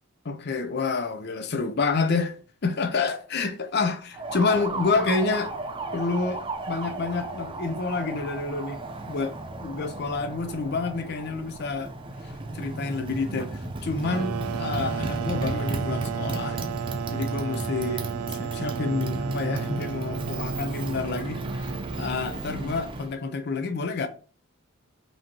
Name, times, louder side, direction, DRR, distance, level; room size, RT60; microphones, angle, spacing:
voice 1, 0.2-5.5 5.9-8.8 9.1-9.3 9.6-11.9 12.2-16.6 17.1-18.1 18.4-21.7 22.0-24.1, left 4 dB, 45° left, 0.5 m, -28 dB
Motorcycle, 4.1-23.1, right 2 dB, 20° right, 0.5 m, -34 dB
sound 1, 14.0-22.5, right 8 dB, 85° right, 0.3 m, -33 dB
5.5 x 2.9 x 2.9 m
head